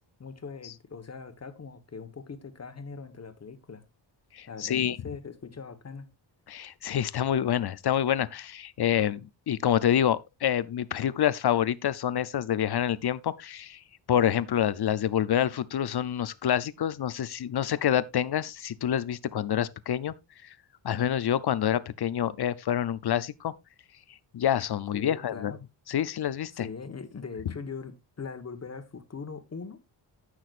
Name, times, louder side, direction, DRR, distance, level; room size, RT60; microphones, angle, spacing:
voice 1, 0.2-3.8 4.5-6.1 24.9-25.6 26.5-29.8, left 5 dB, 35° left, 1.4 m, -41 dB
voice 2, 4.3-5.0 6.5-13.8 14.1-20.1 20.4-20.5 20.8-23.5 24.3-25.5 25.9-26.7, left 10 dB, 55° left, 0.7 m, -27 dB
15.5 x 6.3 x 2.5 m
wide cardioid pair, 135°, 46 cm